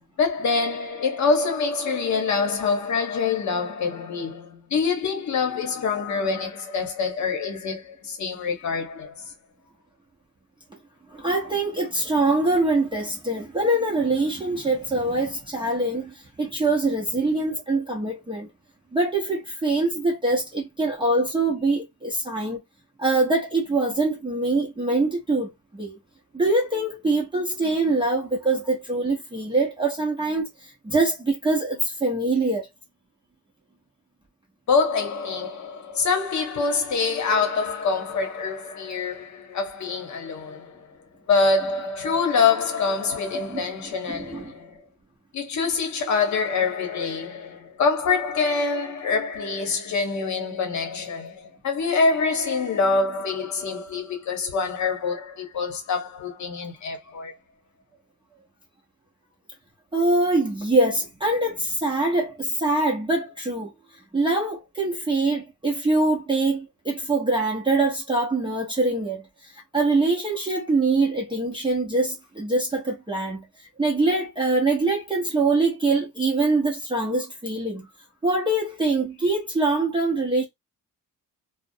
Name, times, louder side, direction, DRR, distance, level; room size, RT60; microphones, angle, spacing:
voice 1, 0.2-9.3 34.7-40.9 41.3-44.8 45.3-57.3, left 4 dB, 50° left, 0.9 m, -25 dB
voice 2, 11.1-18.5 18.9-22.6 23.0-26.0 26.3-32.7 43.5-43.6 44.1-44.4 59.9-63.7 64.1-73.4 73.8-77.9 78.2-80.4, right 2 dB, 15° right, 0.6 m, -24 dB
2.4 x 2.0 x 2.6 m
wide cardioid pair, 170°, 35 cm